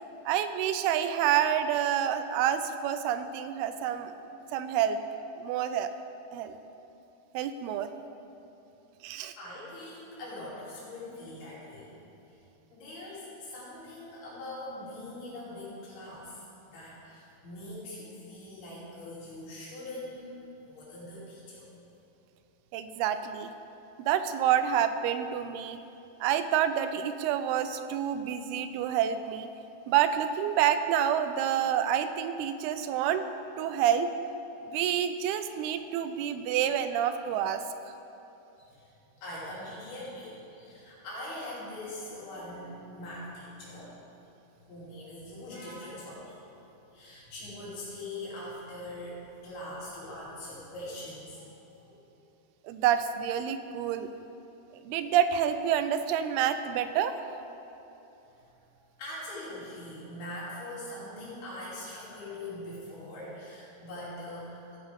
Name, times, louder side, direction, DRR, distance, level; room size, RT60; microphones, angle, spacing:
voice 1, 0.3-4.1 4.5-5.0 5.4-5.9 6.3-6.6 7.3-7.9 9.0-9.3 22.7-23.5 24.0-25.8 26.2-29.5 29.9-33.3 33.6-34.1 34.7-37.6 52.7-54.1 54.8-57.2, right 9 dB, 90° right, 10 dB, 2.6 m, -28 dB
voice 2, 9.4-11.9 12.7-20.3 20.7-21.7 38.6-38.9 39.2-44.1 44.7-46.6 46.9-49.2 49.4-51.4 51.8-52.0 59.0-64.8, left 1 dB, 85° left, -7 dB, 4.9 m, -42 dB
15.0 x 9.7 x 3.6 m, 3.0 s
omnidirectional pair, 4.4 m